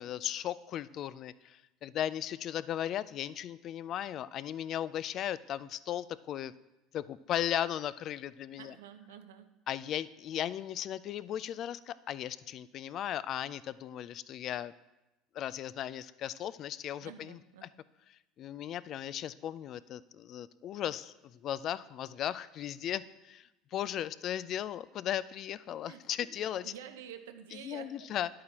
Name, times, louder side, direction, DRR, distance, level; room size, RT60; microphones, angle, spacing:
voice 1, 0.0-6.5 6.9-8.7 9.7-14.7 15.3-17.4 18.4-21.1 21.4-26.6 27.6-28.3, left 11 dB, 50° left, 17 dB, 0.3 m, -36 dB
voice 2, 8.6-9.5 17.0-17.7 25.8-26.0 26.6-28.1, right 9 dB, 90° right, 9 dB, 0.7 m, -49 dB
10.5 x 8.5 x 2.9 m, 0.98 s
supercardioid pair, 90°, 0 cm